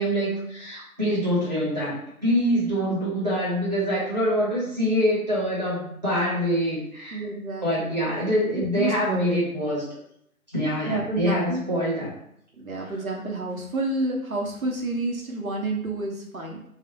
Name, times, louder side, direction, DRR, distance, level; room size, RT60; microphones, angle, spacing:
voice 1, 0.0-2.0 2.2-7.2 7.6-9.8 10.5-12.1 12.8-12.9, equal, 30° right, -9 dB, 1.0 m, -25 dB
voice 2, 7.1-7.9 8.6-9.4 10.8-11.6 12.6-16.6, right 2 dB, 65° right, 0 dB, 0.8 m, -29 dB
2.4 x 2.1 x 3.8 m, 0.72 s
figure-of-eight pair, 155°, 44 cm